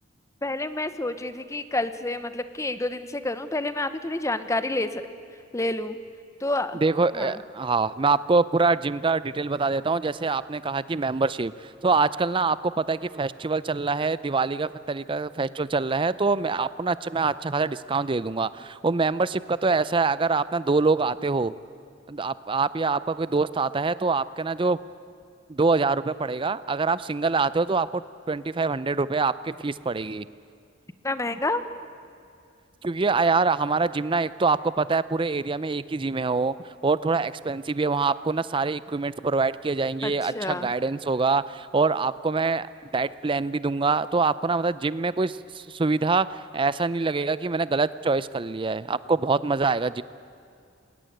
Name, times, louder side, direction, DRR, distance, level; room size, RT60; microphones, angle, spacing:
voice 1, 0.4-5.0 5.5-6.0 6.4-6.8 7.1-7.4 31.0-31.6 40.0-40.7, left 2 dB, 15° left, 11 dB, 0.9 m, -29 dB
voice 2, 6.8-21.5 22.1-24.8 25.5-28.0 28.3-30.3 32.8-36.5 36.8-42.7 42.9-50.0, right 4 dB, 25° right, 16 dB, 0.5 m, -25 dB
21.0 x 18.0 x 9.1 m, 2.4 s
head